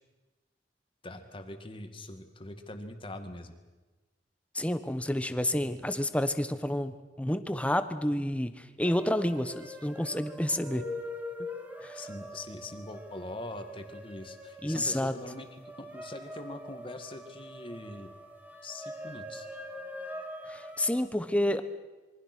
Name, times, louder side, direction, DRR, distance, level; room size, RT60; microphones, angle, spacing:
voice 1, 1.0-3.6 11.9-18.1 18.6-19.5, left 1 dB, 30° left, 6 dB, 2.3 m, -43 dB
voice 2, 4.5-10.8 11.8-12.0 14.6-15.1 20.5-21.6, left 1 dB, 5° left, 10 dB, 1.2 m, -29 dB
sound 1, 8.8-21.0, left 1 dB, 10° right, 2.5 m, -43 dB
27.0 x 23.5 x 6.3 m, 1.2 s
head